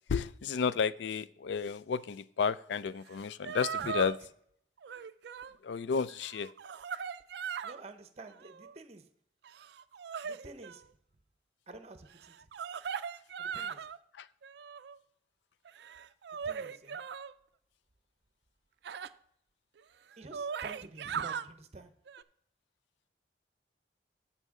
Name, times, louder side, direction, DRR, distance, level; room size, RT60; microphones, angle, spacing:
voice 1, 0.1-4.1 5.6-6.5 14.1-14.3, left 6 dB, 70° left, 0.4 m, -32 dB
sound 1, 3.1-3.2 3.4-4.2 4.8-5.5 6.1-7.8 8.3-8.8 9.4-10.8 12.2-14.0 14.4-15.0 15.6-17.3 18.8-19.1 19.8-19.9 20.1-21.5 22.1-22.2, right 7 dB, 65° right, 0.3 m, -39 dB
voice 2, 3.8-4.1 7.6-9.1 10.2-10.9 11.7-12.5 13.4-13.9 16.4-17.0 20.2-21.9, right 2 dB, 35° right, 0.7 m, -50 dB
14.5 x 5.2 x 3.7 m
head